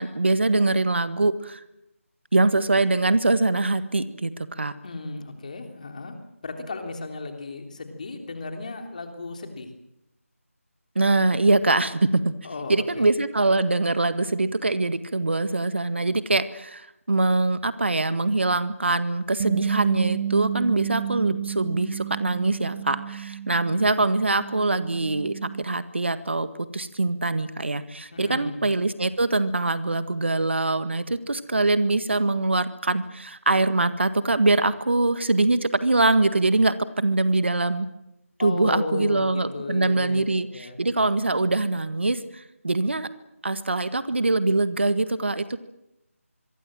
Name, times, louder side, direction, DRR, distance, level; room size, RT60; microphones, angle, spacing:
voice 1, 0.0-1.6 2.3-4.7 10.9-12.3 12.7-26.5 26.7-37.9 38.4-43.1 43.4-45.6, right 2 dB, 50° right, 12 dB, 1.7 m, -23 dB
voice 2, 4.8-6.2 6.4-9.7 12.4-13.1 28.1-28.6 38.4-40.8, left 3 dB, 30° left, 5 dB, 3.3 m, -35 dB
Bass guitar, 19.4-25.6, right 9 dB, 20° right, 1.4 m, -31 dB
25.5 x 23.0 x 7.7 m, 0.88 s
figure-of-eight pair, 160°, 8 cm